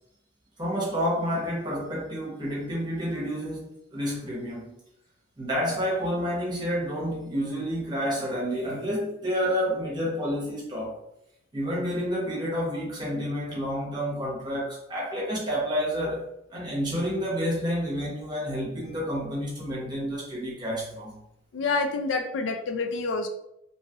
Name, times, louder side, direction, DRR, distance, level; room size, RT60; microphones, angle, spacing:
voice 1, 0.6-4.7 5.4-11.0 11.5-16.2 16.5-21.2, equal, 20° right, -5 dB, 0.9 m, -29 dB
voice 2, 21.5-23.3, left 3 dB, 70° left, 5 dB, 0.3 m, -27 dB
2.9 x 2.3 x 2.9 m, 0.81 s
head